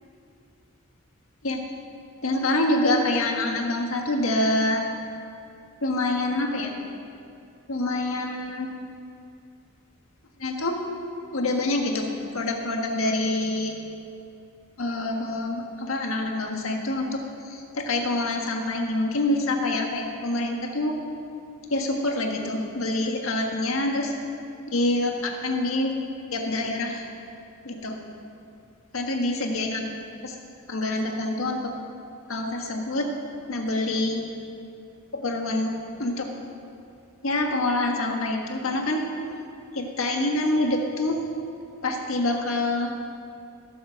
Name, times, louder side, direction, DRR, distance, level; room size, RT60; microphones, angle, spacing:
voice 1, 2.2-4.9 5.8-6.7 7.7-8.7 10.4-10.8 11.3-13.7 14.8-21.0 21.7-24.1 24.7-25.9 26.3-27.1 27.6-28.0 28.9-29.8 30.2-30.4 30.7-31.7 32.3-33.1 33.5-34.3 35.1-36.3 37.2-39.1 39.7-41.3 41.8-43.0, left 2 dB, 85° left, 2 dB, 1.6 m, -26 dB
15.5 x 7.2 x 6.4 m, 2.5 s
head